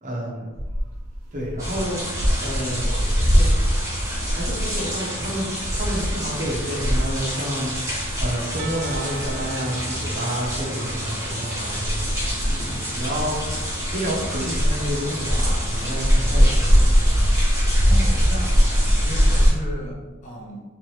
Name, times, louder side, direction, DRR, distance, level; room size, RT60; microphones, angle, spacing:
voice 1, 0.0-0.5 1.3-2.0 2.4-3.5 4.3-13.4 13.9-17.0, equal, 40° right, -2 dB, 0.7 m, -30 dB
sound 1, 0.5-4.9 5.2-5.3 5.6-7.4 7.9-8.3 8.9-10.0 10.4-16.0 16.5-19.7, equal, 80° right, 0.8 m, -24 dB
sound 2, 1.6-19.5, equal, 15° right, 0.9 m, -24 dB
Percussion, 8.6-12.5, right 6 dB, 60° right, 0.3 m, -42 dB
voice 2, 17.8-20.6, equal, 35° left, -2 dB, 0.7 m, -34 dB
3.3 x 3.0 x 3.2 m, 1.3 s
head